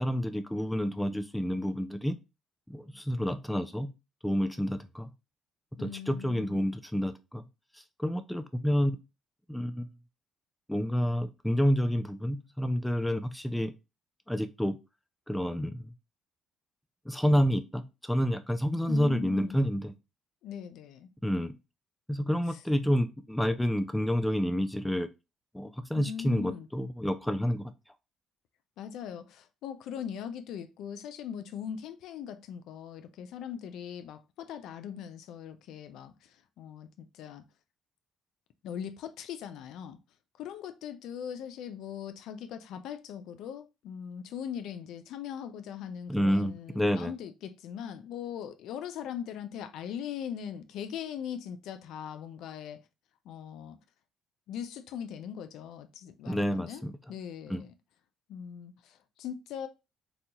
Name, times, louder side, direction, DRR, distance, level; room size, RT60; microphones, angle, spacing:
voice 1, 0.0-2.2 2.7-3.9 4.2-5.1 5.8-7.4 7.7-9.0 9.5-9.9 10.7-13.7 14.3-14.8 15.3-15.9 17.1-19.9 21.2-21.5 22.1-25.1 25.5-27.7 46.1-47.1 56.3-56.9 57.5-57.6, equal, 5° left, 0.3 m, -29 dB
voice 2, 5.8-6.7 18.9-19.6 20.4-21.1 22.5-22.6 25.9-26.7 28.8-37.4 38.6-40.0 40.4-52.8 53.3-53.8 54.5-56.8 57.1-57.7 58.3-59.7, left 8 dB, 75° left, 0.4 m, -40 dB
4.1 x 2.2 x 2.8 m
cardioid pair, 100°, 0 cm